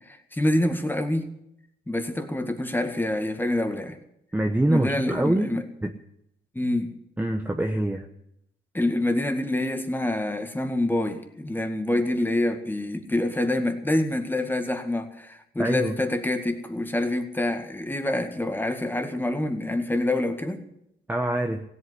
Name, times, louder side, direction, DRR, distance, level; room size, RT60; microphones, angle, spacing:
voice 1, 0.1-1.3 1.9-4.0 4.7-5.6 6.5-6.9 8.7-20.6, left 1 dB, 10° left, 2.0 m, -26 dB
voice 2, 4.3-5.9 7.2-8.1 15.6-16.0 21.1-21.6, right 1 dB, 10° right, 1.0 m, -25 dB
16.5 x 8.3 x 9.7 m
cardioid pair, 90°, 20 cm